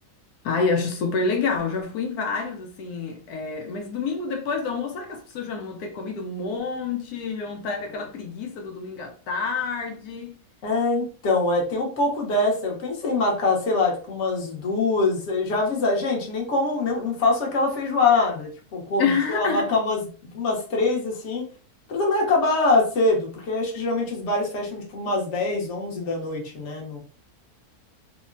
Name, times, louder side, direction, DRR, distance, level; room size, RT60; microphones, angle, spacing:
voice 1, 0.4-10.3 19.0-19.8, left 4 dB, 85° left, 1.1 m, -28 dB
voice 2, 10.6-20.0 20.3-21.4 21.9-27.0, left 3 dB, 55° left, 1.1 m, -24 dB
3.7 x 2.1 x 2.5 m
omnidirectional pair, 1.6 m